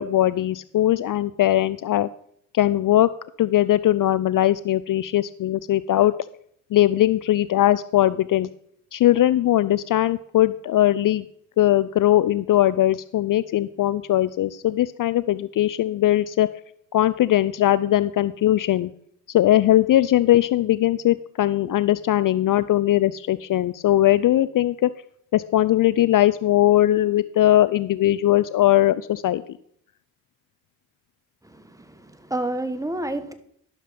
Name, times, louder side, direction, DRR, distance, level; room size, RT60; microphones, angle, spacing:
voice 1, 0.0-2.1 2.5-3.1 3.4-6.1 6.7-8.5 8.9-11.3 11.6-16.5 16.9-18.9 19.3-24.9 25.3-29.4, left 13 dB, 55° left, 16 dB, 0.5 m, -20 dB
voice 2, 31.4-33.3, right 1 dB, 10° right, 9 dB, 1.3 m, -30 dB
11.5 x 6.5 x 5.1 m, 0.67 s
supercardioid pair, 50°, 41 cm